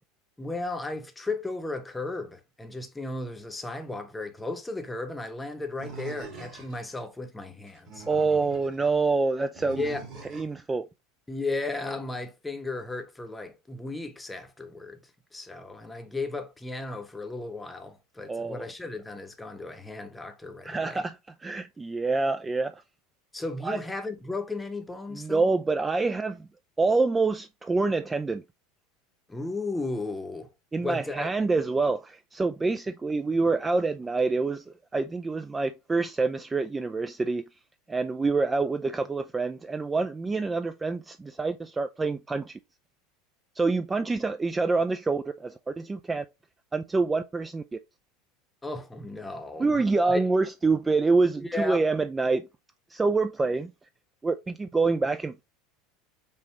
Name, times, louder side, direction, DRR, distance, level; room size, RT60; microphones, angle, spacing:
voice 1, 0.4-8.0 9.8-10.1 11.3-21.0 23.3-25.5 29.3-30.5 30.8-31.3 48.6-50.3 51.4-51.9, left 2 dB, 10° left, 0.8 m, -35 dB
Animal, 5.8-6.9 7.7-8.8 9.6-10.6, right 4 dB, 50° right, 2.4 m, -43 dB
voice 2, 8.1-9.8 10.3-10.9 18.3-18.7 20.6-22.8 23.6-23.8 25.1-26.5 26.8-28.4 30.7-34.6 34.9-37.4 37.9-42.6 43.6-46.2 46.7-47.6 49.6-52.5 52.9-53.7 54.2-55.4, right 3 dB, 15° right, 0.3 m, -26 dB
5.3 x 2.4 x 3.0 m
hypercardioid pair, 80°, 0 cm